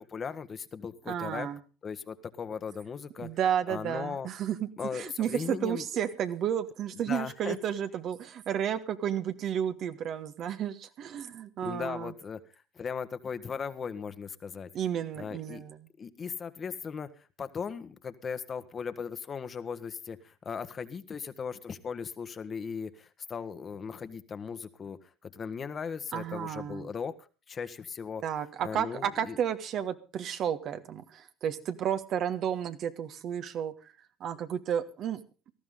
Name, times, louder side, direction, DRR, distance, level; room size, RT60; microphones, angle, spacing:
voice 1, 0.0-1.5 1.8-3.3 3.7-4.3 4.8-5.8 7.1-7.6 11.6-12.4 12.7-14.7 15.2-15.6 16.0-17.1 17.4-25.0 25.3-27.1 27.5-28.2 28.6-29.4, left 6 dB, 40° left, 11 dB, 1.4 m, -37 dB
voice 2, 1.1-1.6 3.2-12.1 14.7-15.9 26.1-26.9 28.2-33.7 34.2-35.2, right 9 dB, 55° right, 9 dB, 1.5 m, -32 dB
18.5 x 14.0 x 3.8 m, 0.35 s
hypercardioid pair, 70°, 0 cm